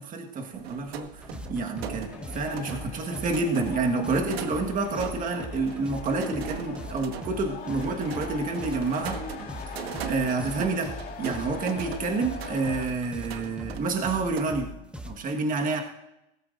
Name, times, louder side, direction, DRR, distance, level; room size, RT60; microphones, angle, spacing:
voice 1, 0.0-9.2 9.7-14.7 15.0-15.8, right 3 dB, 25° right, 3 dB, 1.6 m, -29 dB
sound 1, 0.5-14.5, right 6 dB, 85° right, 1.5 m, -40 dB
sound 2, 1.2-15.2, left 1 dB, 5° right, 1.0 m, -41 dB
sound 3, 2.1-12.9, left 7 dB, 30° left, 2.5 m, -42 dB
21.0 x 14.0 x 2.6 m, 0.88 s
supercardioid pair, 125°, 29 cm